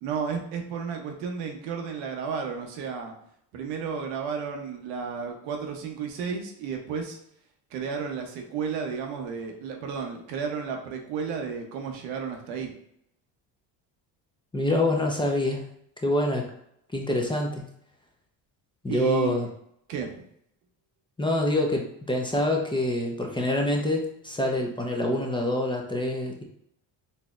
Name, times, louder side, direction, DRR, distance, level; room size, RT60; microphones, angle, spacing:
voice 1, 0.0-3.1 3.5-7.2 7.7-12.7 18.9-19.3 19.9-20.2, right 6 dB, 85° right, 3 dB, 0.8 m, -32 dB
voice 2, 14.5-15.7 16.0-16.5 16.9-17.7 18.8-19.5 21.2-26.4, left 1 dB, 10° left, 1 dB, 0.5 m, -26 dB
4.1 x 2.7 x 2.3 m, 0.72 s
supercardioid pair, 85°, 44 cm